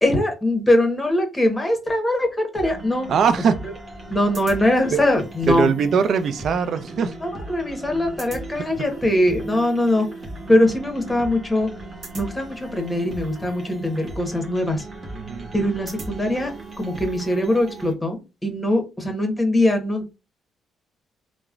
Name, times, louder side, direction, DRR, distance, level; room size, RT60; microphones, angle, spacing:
voice 1, 0.0-3.1 4.1-5.7 7.2-10.1 10.5-11.7 12.1-14.8 15.5-16.5 16.8-20.2, left 1 dB, 15° left, 1.0 m, -21 dB
sound 1, 2.6-17.9, right 2 dB, 40° right, 1.0 m, -37 dB
voice 2, 3.1-3.6 4.9-5.0 5.5-7.1 8.8-8.9 15.1-15.5, right 6 dB, 60° right, 0.3 m, -21 dB
3.0 x 2.1 x 2.4 m
cardioid pair, 90°, 0 cm